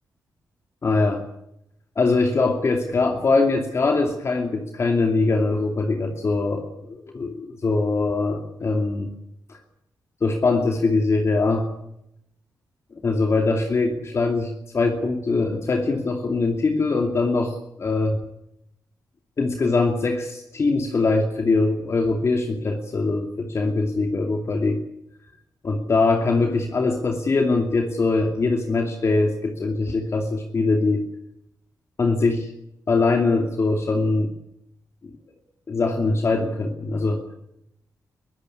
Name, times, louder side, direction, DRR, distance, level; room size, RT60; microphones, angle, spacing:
voice 1, 0.8-1.2 2.0-9.1 9.5-9.6 10.2-11.7 13.0-18.2 19.4-24.8 25.6-31.0 32.0-32.5 32.9-34.3 35.7-37.3, left 3 dB, 45° left, 3 dB, 2.6 m, -22 dB
22.5 x 15.5 x 9.8 m, 0.81 s
cardioid pair, 90°, 7 cm